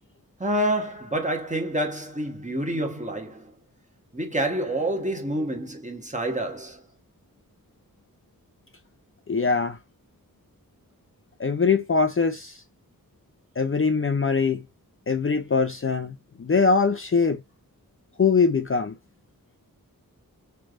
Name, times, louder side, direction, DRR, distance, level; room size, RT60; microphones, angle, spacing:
voice 1, 0.4-3.5 4.1-6.8, right 1 dB, 20° right, 1.2 m, -28 dB
voice 2, 9.3-9.8 11.4-12.6 13.6-14.6 15.1-17.4 18.2-19.0, left 5 dB, 40° left, 0.5 m, -22 dB
3.3 x 3.0 x 2.3 m
cardioid pair, 40°, 35 cm